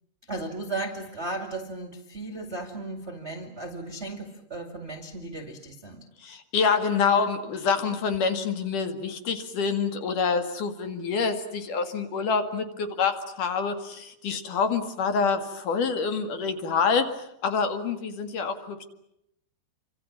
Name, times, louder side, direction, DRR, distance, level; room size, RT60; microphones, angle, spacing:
voice 1, 0.3-6.0, right 2 dB, 30° right, 5 dB, 1.1 m, -35 dB
voice 2, 6.2-18.8, left 5 dB, 55° left, 7 dB, 3.0 m, -27 dB
28.5 x 25.5 x 7.4 m, 0.78 s
omnidirectional pair, 5.3 m